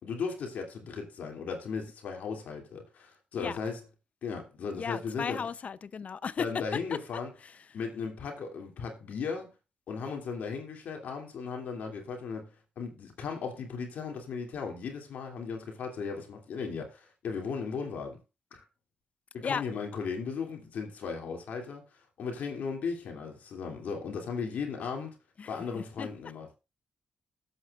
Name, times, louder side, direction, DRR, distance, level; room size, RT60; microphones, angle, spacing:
voice 1, 0.0-3.8 4.2-5.4 6.4-7.3 7.7-9.5 9.9-12.5 12.8-18.2 18.5-18.6 19.3-21.8 22.2-25.2 25.5-26.5, left 5 dB, 70° left, 2.7 m, -36 dB
voice 2, 4.7-6.6 6.9-7.0 7.4-7.6 19.4-19.6 25.4-26.1, left 6 dB, 50° left, 0.6 m, -35 dB
19.0 x 8.1 x 2.5 m
supercardioid pair, 50°, 3 cm